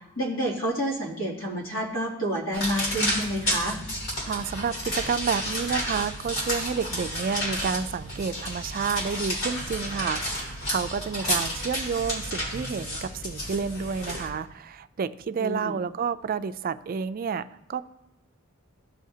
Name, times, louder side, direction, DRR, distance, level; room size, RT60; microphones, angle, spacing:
voice 1, 0.2-3.8 11.2-11.4 15.4-15.8, equal, 90° left, -4 dB, 2.7 m, -29 dB
sound 1, 2.5-14.3, equal, 75° left, 3.1 m, -31 dB
voice 2, 4.3-17.8, right 6 dB, 45° right, 12 dB, 0.3 m, -30 dB
15.0 x 5.6 x 2.8 m, 0.90 s
head